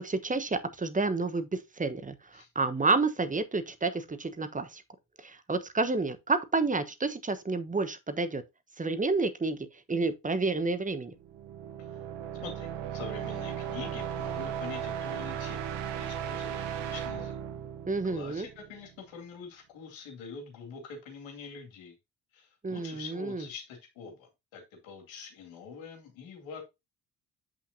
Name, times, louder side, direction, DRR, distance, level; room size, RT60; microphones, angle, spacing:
voice 1, 0.0-4.8 5.2-8.4 8.8-9.6 9.9-11.1 17.9-18.5 22.6-23.5, right 3 dB, 15° right, 1.1 m, -30 dB
sound 1, 11.2-18.9, right 9 dB, 60° right, 1.1 m, -36 dB
voice 2, 12.4-17.4 18.0-21.9 22.3-26.6, left 5 dB, 70° left, 2.4 m, -45 dB
8.6 x 5.7 x 2.7 m
hypercardioid pair, 45°, 49 cm